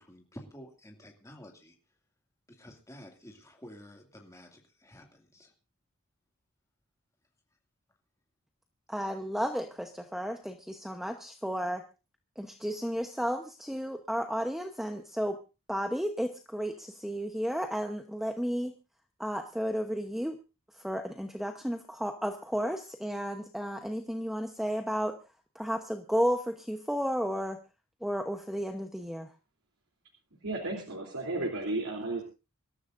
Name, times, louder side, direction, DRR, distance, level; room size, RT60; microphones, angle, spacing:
voice 1, 0.0-1.8 2.5-5.5, equal, 15° left, 2 dB, 2.4 m, -50 dB
voice 2, 8.9-11.8 12.4-15.4 15.7-18.7 19.2-20.4 20.8-25.1 25.5-27.6 28.0-29.3, equal, ahead, 5 dB, 0.9 m, -33 dB
voice 3, 30.4-32.2, right 2 dB, 90° right, 0 dB, 3.3 m, -33 dB
25.5 x 13.5 x 2.6 m, 0.30 s
head